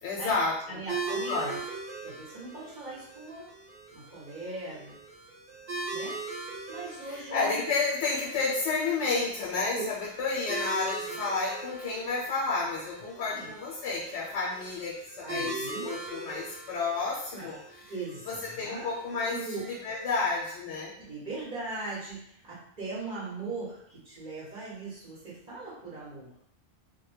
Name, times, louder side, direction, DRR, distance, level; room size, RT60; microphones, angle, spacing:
voice 1, 0.0-0.8 1.1-1.5 7.0-17.8 18.3-20.9, left 4 dB, 80° left, -4 dB, 0.9 m, -31 dB
voice 2, 0.7-1.6 2.0-3.5 3.9-5.0 5.9-6.2 6.7-7.6 13.3-13.5 15.2-16.0 17.3-17.5 17.9-18.9 19.3-19.6 21.0-26.3, right 3 dB, 45° right, -8 dB, 0.8 m, -40 dB
sound 1, 0.9-20.0, right 3 dB, 80° right, 1.0 m, -41 dB
2.1 x 2.1 x 3.2 m, 0.70 s
omnidirectional pair, 1.2 m